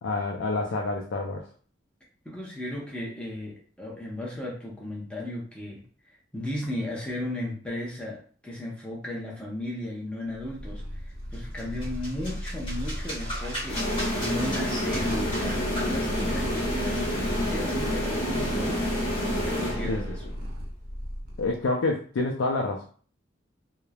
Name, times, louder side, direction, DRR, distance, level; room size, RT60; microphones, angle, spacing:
voice 1, 0.0-1.4 19.8-20.0 21.4-22.9, left 2 dB, 75° left, 0 dB, 0.4 m, -27 dB
voice 2, 2.2-5.8 6.3-10.8 11.3-19.0 19.3-20.2, left 1 dB, 5° left, -4 dB, 0.7 m, -35 dB
Purr, 10.3-21.6, equal, 50° right, 0.6 m, -35 dB
sound 1, 11.3-18.8, equal, 25° left, 1.2 m, -39 dB
sound 2, 13.7-20.3, equal, 45° left, 0.9 m, -29 dB
3.0 x 2.0 x 2.3 m, 0.43 s
head